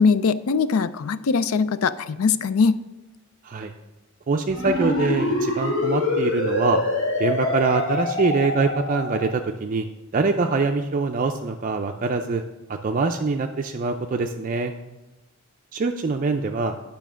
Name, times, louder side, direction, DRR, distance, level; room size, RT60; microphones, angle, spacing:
voice 1, 0.0-2.8, left 5 dB, 90° left, 15 dB, 0.4 m, -21 dB
voice 2, 4.3-6.8 7.2-9.9 10.1-12.4 12.7-14.7 15.7-16.8, right 4 dB, 40° right, 4 dB, 0.4 m, -24 dB
sound 1, 4.5-9.3, left 2 dB, 65° left, 2.5 m, -25 dB
9.1 x 5.2 x 6.1 m, 1.1 s
head